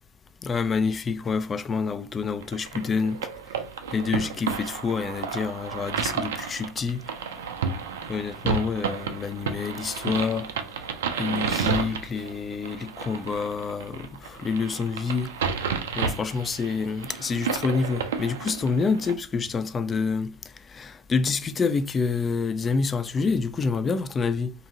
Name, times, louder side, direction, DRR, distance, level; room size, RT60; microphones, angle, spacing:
voice 1, 0.4-3.2 3.9-7.0 8.1-10.5 11.2-15.3 16.0-20.3 20.7-24.5, left 5 dB, 30° left, 0.3 m, -27 dB
sound 1, 2.4-19.1, right 6 dB, 80° right, 0.4 m, -31 dB
2.7 x 2.6 x 2.7 m
hypercardioid pair, 80°, 0 cm